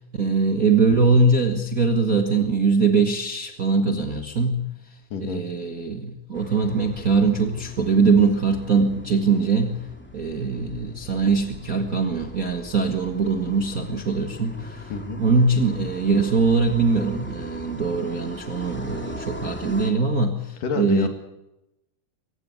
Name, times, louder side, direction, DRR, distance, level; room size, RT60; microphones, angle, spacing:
voice 1, 0.2-4.7 5.2-9.8 10.1-14.9 15.2-21.1, right 4 dB, 40° right, 5 dB, 1.3 m, -22 dB
voice 2, 5.1-5.4 14.9-15.2 20.6-21.1, left 5 dB, 75° left, 7 dB, 4.0 m, -28 dB
sound 1, 6.3-19.9, left 1 dB, 5° left, 1.5 m, -40 dB
23.5 x 15.5 x 9.5 m, 0.91 s
omnidirectional pair, 3.9 m